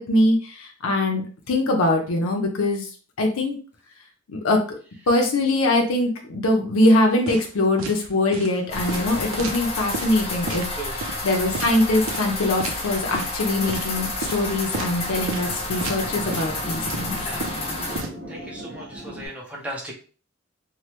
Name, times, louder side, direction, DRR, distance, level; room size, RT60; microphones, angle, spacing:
voice 1, 0.1-2.9 3.2-3.5 4.3-4.8 5.1-10.7 11.2-17.2, left 1 dB, 90° left, 2 dB, 0.6 m, -22 dB
sound 1, 7.3-7.5 7.8-8.0 8.3-8.5 8.9-10.1 10.5-10.7 11.0-11.2 11.5-11.7 12.1-12.3 12.6-12.8 13.1-13.4 13.7-13.9 14.2-14.4 14.7-15.0 15.3-15.5 15.8-16.0 16.3-16.5 16.9-18.1, right 3 dB, 80° right, 0.5 m, -31 dB
sound 2, 8.7-18.0, left 2 dB, 30° left, 0.6 m, -30 dB
sound 3, 14.5-19.3, equal, 45° right, 1.4 m, -38 dB
voice 2, 17.2-17.5 18.3-19.9, right 1 dB, 5° right, -3 dB, 0.7 m, -36 dB
3.2 x 2.1 x 2.9 m, 0.40 s
head